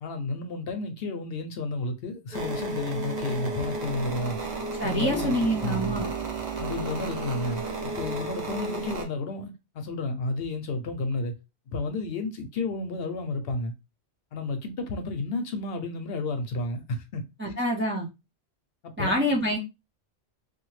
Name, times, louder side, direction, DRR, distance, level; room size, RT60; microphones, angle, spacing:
voice 1, 0.0-4.4 4.8-6.0 6.6-7.6 8.0-11.4 11.7-13.7 14.3-17.2 17.6-17.7 18.8-19.3, left 2 dB, 65° left, 0.8 m, -32 dB
sound 1, 2.3-9.0, right 3 dB, 45° right, 0.7 m, -33 dB
voice 2, 4.8-6.1 17.4-18.1 19.0-19.6, equal, 20° right, 0.3 m, -26 dB
2.8 x 2.3 x 3.0 m
omnidirectional pair, 1.2 m